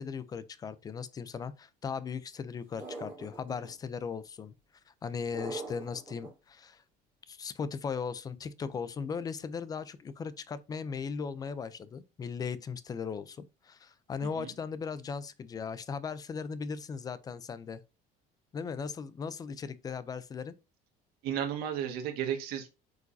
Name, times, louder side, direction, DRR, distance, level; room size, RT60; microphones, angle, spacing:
voice 1, 0.0-4.5 5.0-6.8 7.3-17.8 18.5-20.5, left 6 dB, 20° left, 0.5 m, -38 dB
sound 1, 2.8-3.7 5.3-6.3, right 3 dB, 10° right, 3.6 m, -41 dB
voice 2, 14.2-14.5 21.2-22.7, right 9 dB, 65° right, 1.7 m, -34 dB
8.0 x 4.9 x 2.7 m
cardioid pair, 165°, 17 cm